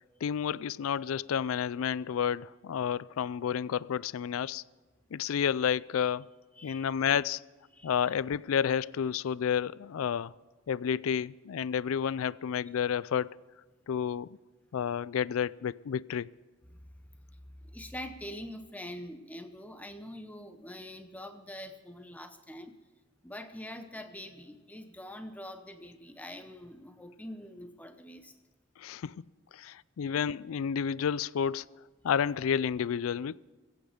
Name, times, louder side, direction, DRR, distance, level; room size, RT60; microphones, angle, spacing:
voice 1, 0.2-4.6 5.1-6.3 6.6-7.4 7.8-10.3 10.7-13.3 13.9-14.3 14.7-16.3 28.8-29.2 29.5-31.6 32.0-33.4, left 8 dB, 80° left, 0.4 m, -30 dB
voice 2, 6.5-6.9 7.7-8.1 16.7-16.9 17.3-22.8 23.2-28.3, left 1 dB, 5° left, 0.7 m, -44 dB
23.5 x 8.7 x 5.1 m
head